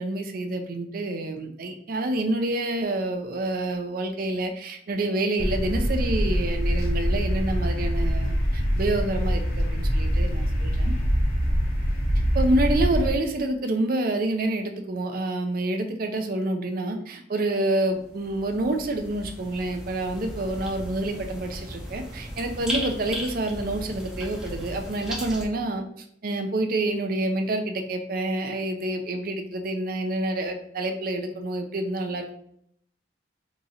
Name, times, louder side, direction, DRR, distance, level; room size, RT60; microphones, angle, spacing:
voice 1, 0.0-10.9 12.3-32.3, right 2 dB, 50° right, 5 dB, 0.5 m, -28 dB
sound 1, 5.4-13.1, equal, 50° left, 0.6 m, -24 dB
sound 2, 17.9-25.5, equal, 5° right, 0.5 m, -36 dB
3.0 x 2.4 x 4.1 m, 0.67 s
head